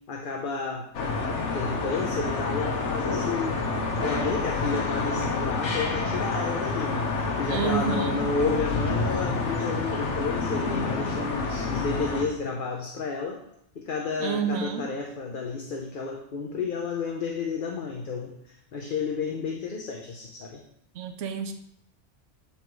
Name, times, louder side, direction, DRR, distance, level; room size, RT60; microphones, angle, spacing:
voice 1, 0.1-0.9 1.5-3.6 4.0-13.4 13.7-20.6, left 4 dB, 50° left, 1 dB, 0.9 m, -31 dB
sound 1, 0.9-12.2, left 3 dB, 75° left, 1.2 m, -28 dB
voice 2, 7.5-8.2 14.2-14.9 21.0-21.5, right 6 dB, 85° right, 7 dB, 1.0 m, -29 dB
7.9 x 4.2 x 4.6 m, 0.74 s
omnidirectional pair, 1.2 m